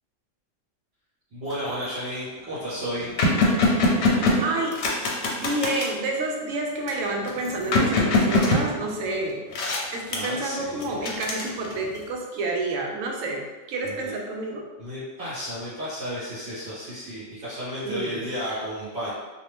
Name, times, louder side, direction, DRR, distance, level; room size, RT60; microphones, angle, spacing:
voice 1, 1.3-3.1 10.1-10.9 13.8-14.1 14.8-19.1, equal, 50° right, -12 dB, 1.3 m, -33 dB
sound 1, 1.5-1.8 2.3-2.4 2.6-6.0 6.9-9.2 9.5-10.4 10.8-12.0, left 2 dB, 65° left, 0.9 m, -23 dB
voice 2, 4.4-4.8 5.3-9.4 9.9-13.4 13.7-14.7 17.8-18.6, right 2 dB, 80° right, 0 dB, 1.0 m, -29 dB
2.7 x 2.5 x 3.3 m, 1.2 s
omnidirectional pair, 1.3 m